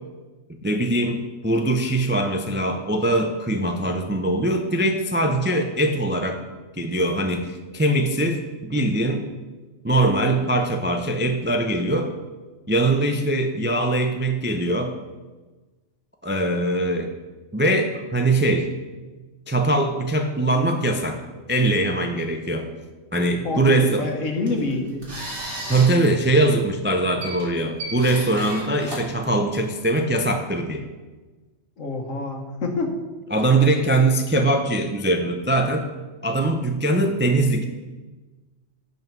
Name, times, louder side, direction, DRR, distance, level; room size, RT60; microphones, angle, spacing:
voice 1, 0.6-6.4 6.8-9.2 9.8-12.1 12.7-14.9 16.2-17.1 17.5-18.7 19.5-21.2 21.5-22.7 23.1-24.0 25.7-30.9 33.3-35.9 36.2-37.6, right 2 dB, 20° right, 5 dB, 0.3 m, -22 dB
voice 2, 23.4-25.1 31.8-32.9, left 3 dB, 75° left, 3 dB, 1.6 m, -27 dB
sound 1, 24.2-29.9, right 1 dB, 65° right, 2.6 m, -36 dB
11.0 x 5.5 x 4.7 m, 1.3 s
omnidirectional pair, 1.3 m